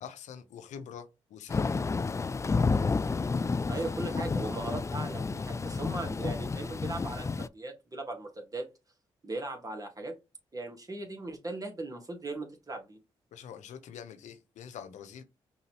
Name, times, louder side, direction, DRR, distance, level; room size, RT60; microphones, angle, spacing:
voice 1, 0.0-1.8 13.3-15.2, left 8 dB, 80° left, 0.8 m, -45 dB
Thunder / Rain, 1.5-7.5, left 4 dB, 25° left, 0.3 m, -30 dB
voice 2, 3.7-8.7 9.2-10.1 10.5-13.0, right 2 dB, 30° right, 1.6 m, -38 dB
5.5 x 2.7 x 3.0 m
supercardioid pair, 50°, 12 cm